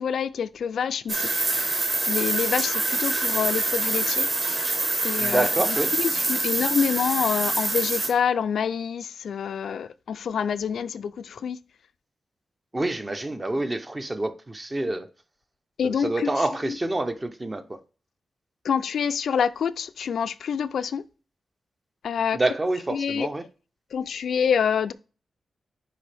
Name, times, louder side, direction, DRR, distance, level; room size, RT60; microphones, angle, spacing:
voice 1, 0.0-1.8 2.1-4.3 5.0-11.6 15.8-16.8 18.6-21.0 22.0-22.4 22.9-23.3 23.9-24.9, left 7 dB, 90° left, 0.4 m, -27 dB
sound 1, 1.1-8.1, right 2 dB, 40° right, 1.7 m, -25 dB
voice 2, 5.2-5.9 12.7-15.1 15.8-17.8 22.3-23.4, right 2 dB, 20° right, 0.6 m, -27 dB
9.8 x 3.3 x 3.4 m
wide cardioid pair, 165°, 0 cm